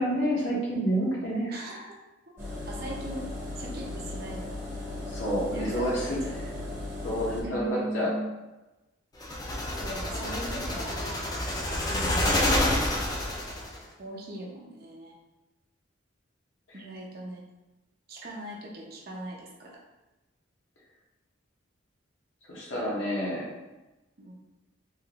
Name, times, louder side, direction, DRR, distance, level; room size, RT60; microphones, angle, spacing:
voice 1, 0.0-1.5 5.1-6.2 7.0-8.1 9.5-9.6 11.9-12.3 22.5-23.5, equal, 75° left, -5 dB, 0.9 m, -29 dB
voice 2, 1.5-2.0 2.7-3.3 3.6-4.6 5.5-6.4 7.4-8.3 9.8-12.2 14.0-15.1 16.7-17.4 18.1-19.8 24.2-24.4, right 1 dB, 50° right, -3 dB, 0.7 m, -39 dB
Engine, 2.4-7.4, left 2 dB, 15° right, 0.8 m, -37 dB
sound 1, 9.2-13.8, left 1 dB, 20° left, 0.4 m, -28 dB
3.2 x 2.5 x 2.9 m, 1.1 s
head